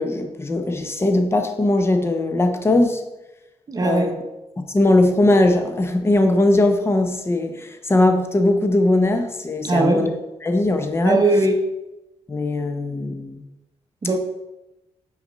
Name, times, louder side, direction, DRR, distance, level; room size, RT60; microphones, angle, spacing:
voice 1, 0.0-3.0 3.8-4.1 4.6-10.1 10.4-11.2 12.3-13.4, left 2 dB, 20° left, 6 dB, 0.7 m, -19 dB
voice 2, 3.7-4.1 9.6-10.1 11.0-11.6 14.0-14.2, right 2 dB, 30° right, 4 dB, 0.7 m, -19 dB
5.8 x 4.0 x 5.4 m, 0.98 s
wide cardioid pair, 140°, 12 cm